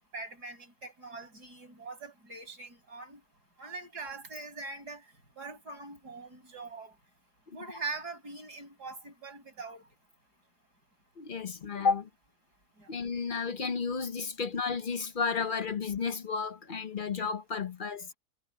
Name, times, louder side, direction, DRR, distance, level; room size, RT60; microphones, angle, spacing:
voice 1, 0.1-3.2 3.6-5.0 5.4-6.9 7.5-9.8 12.8-12.9, right 3 dB, 75° right, 7.9 m, -42 dB
voice 2, 11.2-12.1 12.9-18.1, left 5 dB, 45° left, 0.7 m, -32 dB
omnidirectional pair, 1.7 m